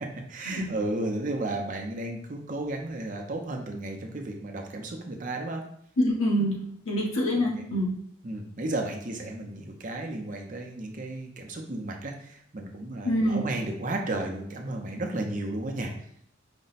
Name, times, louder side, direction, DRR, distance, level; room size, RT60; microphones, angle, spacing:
voice 1, 0.3-5.6 6.4-6.5 7.3-7.4 8.2-15.9, right 2 dB, 40° right, 2 dB, 0.6 m, -33 dB
voice 2, 6.0-7.9 13.0-13.4, equal, 90° left, -3 dB, 1.4 m, -26 dB
5.1 x 2.2 x 4.0 m, 0.69 s
head